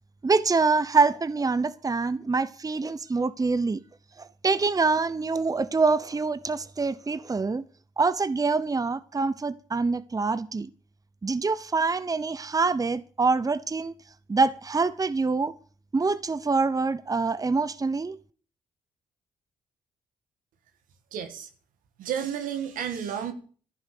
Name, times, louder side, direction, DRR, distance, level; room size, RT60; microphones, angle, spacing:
voice 1, 0.2-3.8 4.4-7.6 8.0-10.7 11.2-13.9 14.3-15.5 15.9-18.2, right 4 dB, 25° right, 0.9 m, -25 dB
voice 2, 21.1-21.5 22.0-23.3, right 8 dB, 80° right, 2.0 m, -31 dB
14.5 x 11.5 x 6.6 m
supercardioid pair, 55°, 14 cm